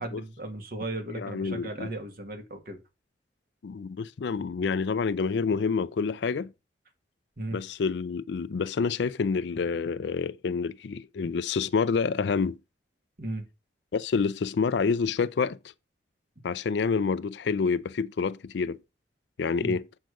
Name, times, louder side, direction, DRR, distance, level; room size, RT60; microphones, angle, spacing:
voice 1, 0.0-2.8 7.4-7.6 13.2-13.5 19.6-19.8, right 1 dB, 50° right, 1.9 m, -36 dB
voice 2, 1.1-1.9 3.6-6.5 7.5-12.6 13.9-15.6 16.4-18.8 19.4-19.9, left 5 dB, 70° left, 0.4 m, -28 dB
7.7 x 4.8 x 5.2 m
head